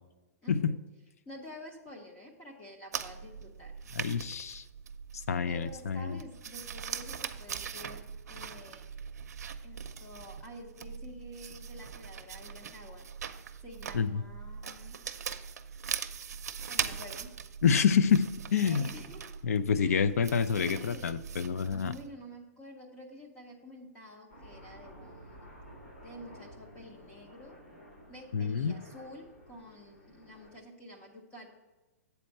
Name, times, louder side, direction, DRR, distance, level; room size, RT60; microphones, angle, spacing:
voice 1, 0.4-0.7 1.3-3.7 5.5-8.0 8.3-9.0 9.6-13.1 13.6-15.0 16.7-17.4 18.6-19.4 19.8-20.0 20.6-21.2 21.7-25.5 26.0-27.6 28.1-31.5, left 1 dB, 15° left, 1 dB, 0.7 m, -49 dB
sound 1, 2.9-22.1, right 7 dB, 85° right, 0.6 m, -41 dB
voice 2, 4.0-4.6 5.3-6.2 13.9-14.2 17.6-18.9 19.4-21.9 28.3-28.8, left 6 dB, 70° left, 15 dB, 0.5 m, -27 dB
Aircraft, 24.3-30.6, equal, 50° left, 2.6 m, -53 dB
8.1 x 4.3 x 6.5 m, 1.2 s
hypercardioid pair, 175°, 9 cm